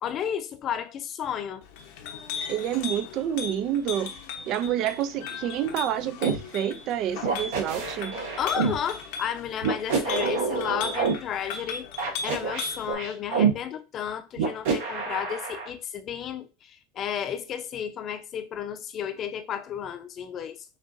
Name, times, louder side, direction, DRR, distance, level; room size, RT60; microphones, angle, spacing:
voice 1, 0.0-1.6 8.4-20.6, left 9 dB, 40° left, 0.7 m, -32 dB
Chink clink, 1.6-12.9, left 5 dB, 70° left, 0.9 m, -38 dB
voice 2, 2.5-4.1 4.5-8.1, right 10 dB, 50° right, 0.5 m, -28 dB
sound 1, 6.2-6.4 7.2-8.8 9.6-11.1 12.0-13.5 14.4-15.7, right 6 dB, 75° right, 1.7 m, -27 dB
6.5 x 2.6 x 2.6 m
hypercardioid pair, 105°, 0 cm